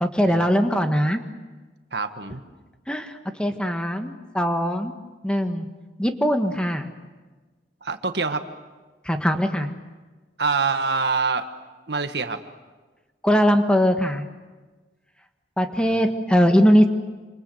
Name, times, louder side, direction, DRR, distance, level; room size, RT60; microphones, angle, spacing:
voice 1, 0.0-1.2 2.9-3.1 3.4-4.9 5.2-5.7 6.0-6.9 9.0-9.7 13.2-14.2 15.6-16.9, equal, 5° left, 6 dB, 1.6 m, -20 dB
voice 2, 1.9-2.4 7.8-8.5 10.4-11.5 11.9-12.4 15.8-16.1, right 4 dB, 70° right, 8 dB, 1.7 m, -25 dB
27.5 x 27.5 x 7.9 m, 1.3 s
head